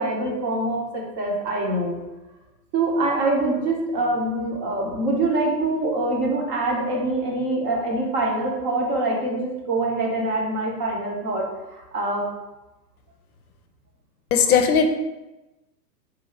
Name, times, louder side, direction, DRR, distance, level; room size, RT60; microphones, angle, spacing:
voice 1, 0.0-2.0 2.7-12.2, right 2 dB, 30° right, -1 dB, 0.9 m, -24 dB
voice 2, 14.3-14.9, left 7 dB, 60° left, 6 dB, 0.6 m, -17 dB
3.8 x 2.6 x 4.4 m, 1.0 s
hypercardioid pair, 125°, 50 cm